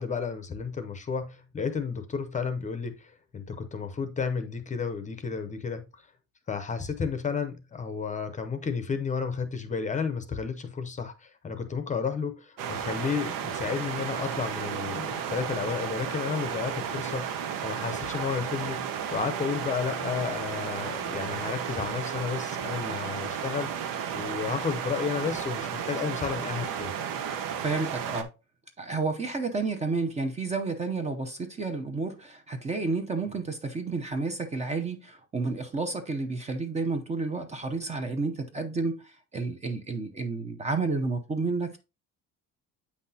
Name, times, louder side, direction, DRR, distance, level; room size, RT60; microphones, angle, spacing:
voice 1, 0.0-5.8 6.5-23.7 24.1-26.9, left 5 dB, 20° left, 0.7 m, -32 dB
sound 1, 12.6-28.2, right 8 dB, 75° right, 1.0 m, -33 dB
voice 2, 27.6-28.3 28.8-41.8, right 3 dB, 20° right, 0.6 m, -31 dB
8.4 x 5.8 x 2.8 m
cardioid pair, 170°, 34 cm